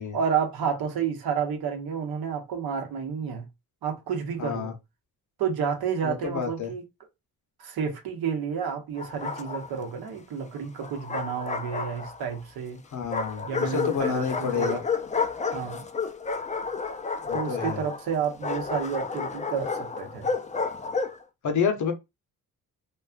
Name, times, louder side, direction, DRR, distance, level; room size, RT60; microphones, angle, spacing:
voice 1, 0.1-3.5 3.8-4.7 5.4-6.8 7.6-12.8 13.4-14.8 15.5-15.8 17.3-20.3, right 7 dB, 70° right, 0.8 m, -30 dB
voice 2, 4.4-4.7 6.0-6.7 12.9-14.8 17.3-17.8 21.4-21.9, left 7 dB, 50° left, 0.8 m, -29 dB
Bark, 9.0-9.9 10.8-12.4 13.1-21.2, left 5 dB, 20° left, 0.4 m, -31 dB
2.5 x 2.3 x 2.4 m
supercardioid pair, 55°, 38 cm